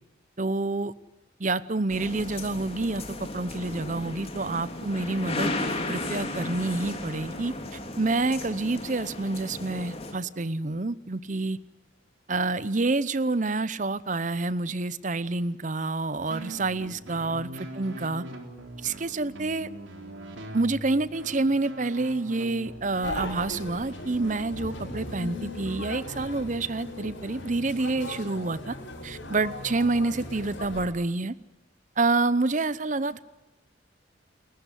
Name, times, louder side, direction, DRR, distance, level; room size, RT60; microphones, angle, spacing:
voice 1, 0.4-0.9 1.4-3.0 3.3-5.5 5.9-7.5 8.0-11.6 12.3-17.5 17.8-18.2 18.8-19.7 20.5-28.7 29.0-31.3 32.0-33.2, right 3 dB, 40° right, 17 dB, 0.8 m, -28 dB
sound 1, 1.9-10.1, left 2 dB, 30° left, 3.3 m, -35 dB
sound 2, 16.3-24.4, right 1 dB, 80° right, 3.9 m, -42 dB
sound 3, 23.0-30.9, left 1 dB, 90° left, 6.7 m, -38 dB
29.5 x 14.5 x 10.0 m, 1.0 s
head